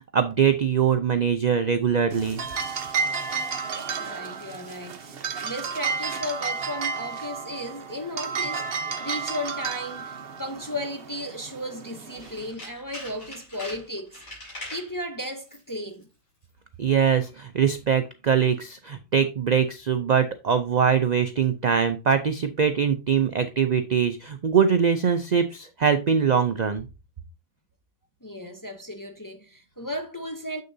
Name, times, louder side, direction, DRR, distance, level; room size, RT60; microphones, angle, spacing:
voice 1, 0.1-2.4 16.8-26.9, right 7 dB, 70° right, 0.4 m, -22 dB
sound 1, 2.1-12.5, right 5 dB, 50° right, 1.0 m, -32 dB
voice 2, 3.9-14.2 14.7-16.1 28.2-30.6, left 1 dB, 20° left, 0.5 m, -35 dB
Tools, 12.1-14.9 15.4-15.8 16.0-16.1, left 1 dB, 70° left, 4.6 m, -41 dB
7.5 x 6.5 x 2.7 m
omnidirectional pair, 1.4 m